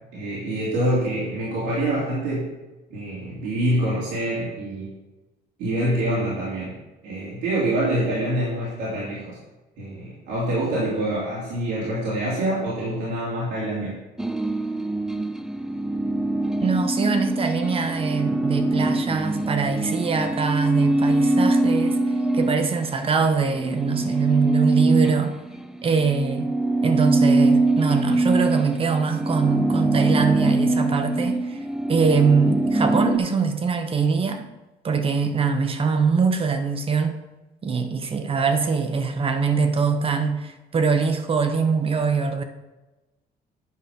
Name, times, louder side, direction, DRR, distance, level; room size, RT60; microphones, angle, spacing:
voice 1, 0.1-2.5 2.9-4.9 5.6-6.7 7.0-9.4 9.8-14.0, right 1 dB, 90° right, -8 dB, 3.0 m, -25 dB
sound 1, 14.2-23.0 23.4-33.2, right 2 dB, 5° right, 0.5 m, -23 dB
voice 2, 16.6-22.0 22.3-25.3 25.8-26.5 26.8-31.6 31.9-34.4 34.8-37.2 37.6-42.4, right 5 dB, 35° right, 7 dB, 1.0 m, -23 dB
9.5 x 5.3 x 5.3 m, 1.1 s
cardioid pair, 110°, 17 cm